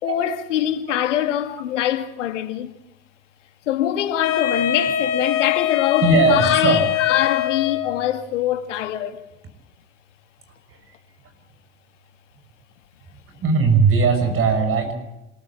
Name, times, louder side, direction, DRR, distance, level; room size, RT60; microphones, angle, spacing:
voice 1, 0.0-2.7 3.7-9.2, left 11 dB, 75° left, 2.3 m, -23 dB
Wind instrument woodwind instrument, 4.2-8.1, left 11 dB, 55° left, 3.0 m, -23 dB
voice 2, 6.0-6.8 10.7-10.8 13.4-14.9, right 4 dB, 35° right, 5.9 m, -18 dB
26.5 x 15.0 x 8.5 m
hypercardioid pair, 85°, 37 cm